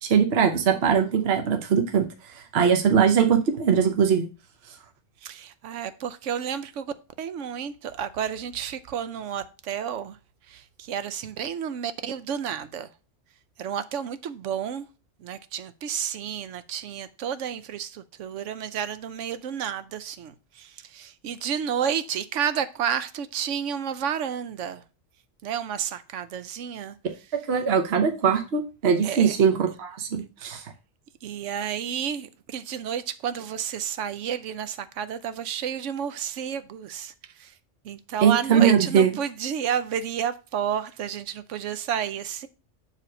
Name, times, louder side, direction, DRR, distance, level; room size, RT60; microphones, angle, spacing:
voice 1, 0.0-4.3 27.5-30.7 38.2-39.1, right 7 dB, 60° right, 1.1 m, -21 dB
voice 2, 5.2-10.2 10.5-12.9 13.6-14.9 15.2-24.8 25.4-27.0 29.0-29.4 31.2-37.5 37.8-42.5, right 8 dB, 85° right, 1.0 m, -31 dB
7.3 x 3.5 x 6.0 m
omnidirectional pair, 1.2 m